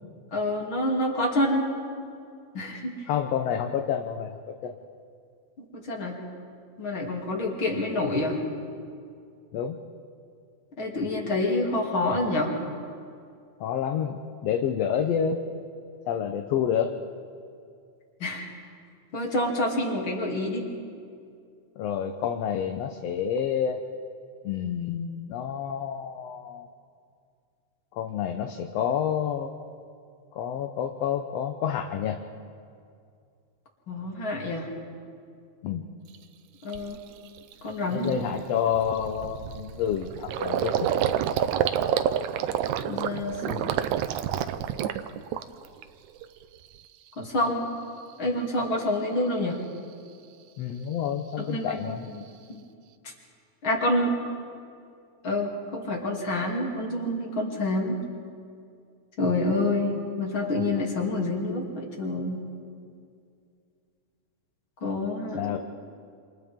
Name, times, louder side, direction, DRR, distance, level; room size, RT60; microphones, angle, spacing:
voice 1, 0.3-1.7 2.5-3.1 5.6-6.2 6.8-8.4 10.8-12.5 18.2-18.5 19.1-20.7 33.9-34.7 36.6-37.0 37.6-38.1 42.8-43.6 47.2-47.6 48.2-49.6 51.4-52.0 52.5-52.6 53.6-54.1 55.2-58.0 59.2-62.4 64.8-65.5, left 1 dB, 45° left, -1 dB, 3.6 m, -27 dB
voice 2, 3.1-4.7 9.5-9.8 13.6-15.4 16.1-16.9 21.8-23.8 24.4-26.7 27.9-29.5 30.3-32.2 35.6-35.9 37.9-40.9 50.6-52.1 65.3-65.6, left 8 dB, 70° left, 5 dB, 1.8 m, -29 dB
Gurgling, 36.1-36.2 36.7-37.0 37.4-37.5 37.8-45.8 46.2-46.8, right 10 dB, 85° right, 2.1 m, -29 dB
28.5 x 27.5 x 3.7 m, 2.3 s
omnidirectional pair, 3.4 m